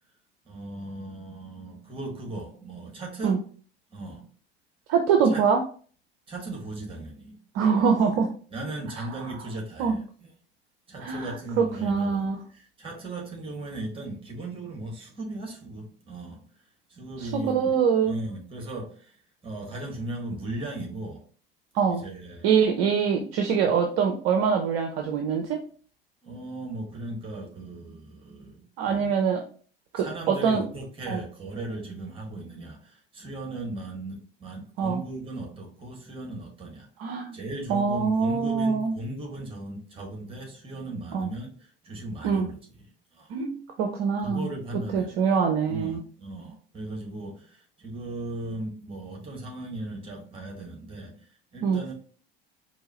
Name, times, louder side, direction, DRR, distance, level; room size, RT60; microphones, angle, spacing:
voice 1, 0.4-3.4 3.9-4.3 5.2-5.4 6.3-7.4 7.7-7.9 8.5-10.3 10.9-16.4 16.9-17.8 18.0-19.2 19.4-21.3 21.9-22.5 26.2-29.1 29.9-42.8 43.1-43.3 44.2-45.2 45.7-51.9, right 2 dB, 20° right, 1.6 m, -37 dB
voice 2, 4.9-5.6 7.5-8.3 9.0-9.1 9.8-10.0 11.0-11.3 11.6-12.4 17.2-18.2 21.7-22.0 22.4-25.6 28.8-29.4 29.9-30.6 31.1-31.2 34.8-35.0 37.0-37.4 37.7-38.9 41.1-41.3 42.2-42.5 43.3-44.5 44.9-46.0 51.6-51.8, right 6 dB, 45° right, 0.7 m, -24 dB
4.7 x 2.7 x 2.9 m
figure-of-eight pair, 75°, 29 cm